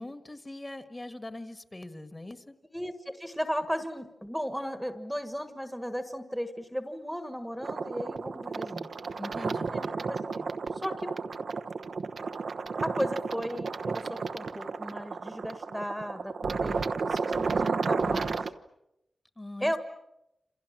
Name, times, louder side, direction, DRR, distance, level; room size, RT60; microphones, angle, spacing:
voice 1, 0.0-2.5 9.2-9.8 19.4-19.8, left 1 dB, 20° left, 9 dB, 1.6 m, -42 dB
voice 2, 2.7-8.9 9.7-11.1 12.8-18.5 19.6-19.8, equal, ahead, 8 dB, 1.5 m, -35 dB
sound 1, 7.6-18.5, right 4 dB, 60° right, 1.0 m, -32 dB
28.0 x 28.0 x 7.4 m, 0.88 s
wide cardioid pair, 155°, 0 cm